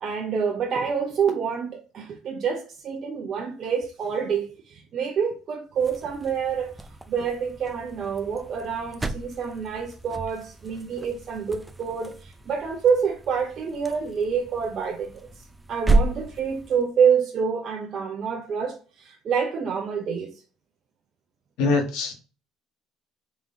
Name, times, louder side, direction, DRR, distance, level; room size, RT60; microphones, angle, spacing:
voice 1, 0.0-6.7 7.1-15.2 15.7-20.4, right 6 dB, 50° right, 0.6 m, -27 dB
sound 1, 5.7-16.9, right 2 dB, 15° right, 0.5 m, -32 dB
voice 2, 21.6-22.1, left 3 dB, 75° left, 1.4 m, -23 dB
3.6 x 3.4 x 2.6 m
supercardioid pair, 85°, 0 cm